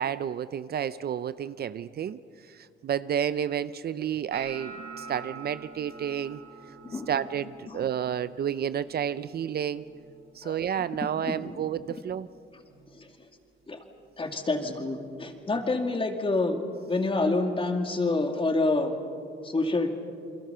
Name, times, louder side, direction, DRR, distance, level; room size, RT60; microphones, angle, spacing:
voice 1, 0.0-2.2 2.5-6.4 6.9-9.8 10.3-12.3, right 9 dB, 50° right, 15 dB, 0.6 m, -31 dB
sound 1, 4.3-10.4 10.7-11.2 11.5-12.1 12.7-12.9 14.7-14.8, right 5 dB, 75° right, 6.0 m, -47 dB
voice 2, 11.3-11.6 13.0-13.1 13.7-13.8 14.2-16.6 16.9-19.0 19.4-19.9, left 2 dB, 25° left, 5 dB, 2.5 m, -27 dB
29.0 x 22.0 x 5.7 m, 2.5 s
cardioid pair, 90°, 20 cm